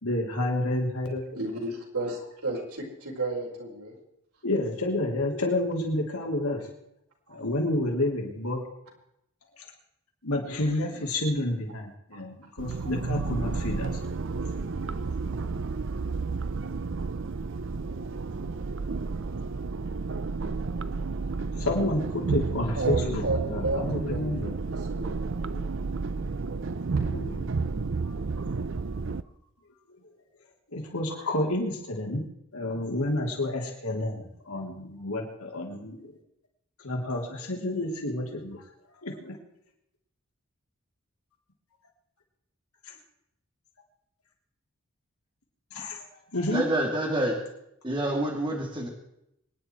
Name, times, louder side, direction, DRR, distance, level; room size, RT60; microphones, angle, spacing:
voice 1, 0.0-1.4 4.4-6.7 7.3-8.6 9.6-9.7 10.2-14.0 21.2-21.3 21.6-24.5 27.0-27.5 28.9-29.0 30.7-32.3 32.5-36.1 36.8-38.6 39.0-39.4 42.8-42.9 45.7-46.0 46.3-46.6, left 1 dB, 85° left, 1 dB, 3.3 m, -30 dB
voice 2, 1.3-4.0 10.5-11.1 11.4-11.5 12.1-12.2 22.8-25.6, right 2 dB, 85° right, -2 dB, 4.9 m, -33 dB
sound 1, 12.6-29.2, right 4 dB, 55° right, 0.6 m, -31 dB
voice 3, 46.5-47.4 47.8-48.9, right 1 dB, 20° right, 0 dB, 2.8 m, -27 dB
25.5 x 10.0 x 4.6 m, 0.79 s
head